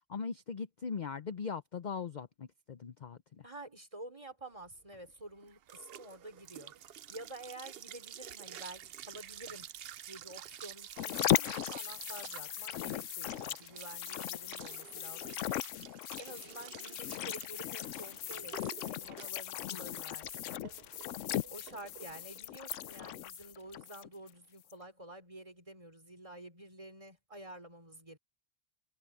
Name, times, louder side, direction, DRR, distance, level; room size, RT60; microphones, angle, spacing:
voice 1, 0.1-3.4 19.7-20.0, left 5 dB, 45° left, 0.6 m, -40 dB
voice 2, 3.4-6.7 7.1-9.7 10.1-15.9 16.2-20.5 21.5-28.2, right 1 dB, 25° right, 3.6 m, -50 dB
sound 1, 4.7-23.7, right 10 dB, 60° right, 0.7 m, -50 dB
sound 2, 11.0-24.3 24.7-24.8, left 13 dB, 70° left, 0.9 m, -38 dB
omnidirectional pair, 1.4 m